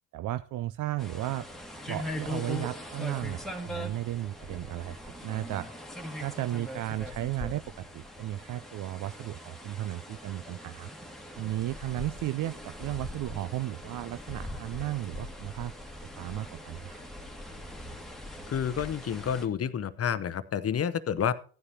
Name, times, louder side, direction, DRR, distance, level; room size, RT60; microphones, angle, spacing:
voice 1, 0.1-1.5 1.9-5.7 6.2-10.9 11.3-15.7 16.0-17.1, right 15 dB, 50° right, 13 dB, 0.4 m, -34 dB
sound 1, 1.0-19.5, left 1 dB, ahead, 1.8 m, -41 dB
voice 2, 18.5-21.3, left 8 dB, 35° left, 15 dB, 0.8 m, -29 dB
14.5 x 9.6 x 2.8 m, 0.40 s
hypercardioid pair, 60°, 44 cm